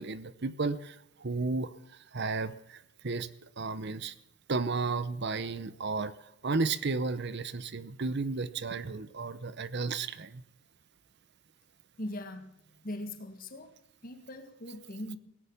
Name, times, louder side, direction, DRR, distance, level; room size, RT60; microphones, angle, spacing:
voice 1, 0.0-4.1 4.5-10.4, right 4 dB, 50° right, 15 dB, 0.8 m, -33 dB
voice 2, 12.0-13.7 14.0-15.2, left 1 dB, 40° left, 8 dB, 1.8 m, -41 dB
17.0 x 10.5 x 7.1 m, 0.79 s
head